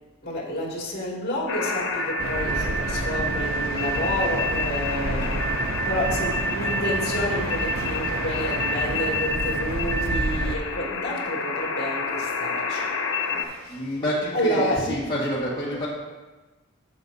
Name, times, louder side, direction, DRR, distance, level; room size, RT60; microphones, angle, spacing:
voice 1, 0.2-5.4 5.8-13.9 14.3-15.0, equal, 50° left, -5 dB, 2.4 m, -29 dB
sound 1, 1.5-13.4, left 2 dB, 80° left, 0.9 m, -28 dB
sound 2, 2.2-10.6, right 2 dB, 80° right, 0.6 m, -30 dB
voice 2, 13.3-15.9, equal, 20° left, -7 dB, 1.6 m, -28 dB
11.5 x 7.2 x 2.7 m, 1.2 s
head